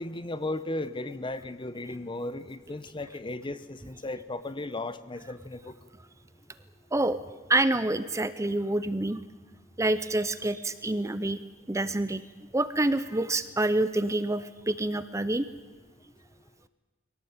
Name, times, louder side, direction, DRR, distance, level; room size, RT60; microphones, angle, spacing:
voice 1, 0.0-5.7, left 2 dB, 25° left, 14 dB, 0.8 m, -35 dB
voice 2, 7.5-9.2 9.8-11.4 11.7-12.2 12.5-15.4, right 2 dB, 15° right, 13 dB, 0.6 m, -27 dB
23.5 x 17.5 x 8.8 m, 1.2 s
head